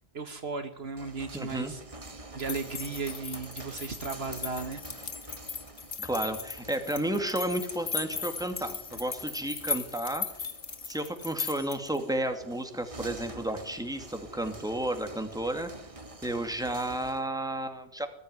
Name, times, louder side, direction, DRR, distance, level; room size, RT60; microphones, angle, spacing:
voice 1, 0.1-1.8 2.3-4.8, right 4 dB, 65° right, 8 dB, 1.7 m, -35 dB
sound 1, 0.8-17.3, right 2 dB, 30° right, 1.7 m, -47 dB
voice 2, 1.3-1.7 6.0-10.5 10.9-15.7 16.2-18.1, right 1 dB, 5° right, 5 dB, 2.5 m, -32 dB
sound 2, 2.4-12.0, left 5 dB, 55° left, 1.7 m, -37 dB
20.0 x 14.5 x 9.8 m, 0.75 s
omnidirectional pair, 1.1 m